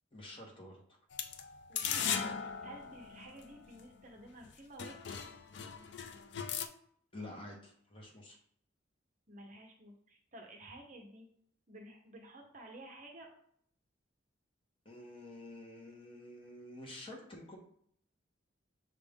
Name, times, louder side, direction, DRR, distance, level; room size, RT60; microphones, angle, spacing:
voice 1, 0.1-1.0 7.1-8.4 14.8-17.6, left 1 dB, 25° left, -1 dB, 1.0 m, -49 dB
sound 1, 1.1-3.8 4.4-4.5 4.8-6.7, left 7 dB, 60° left, 0.4 m, -38 dB
voice 2, 1.7-5.2 9.3-11.3 11.7-13.3, right 1 dB, 40° right, 1 dB, 0.7 m, -52 dB
6.1 x 2.5 x 3.5 m, 0.65 s
head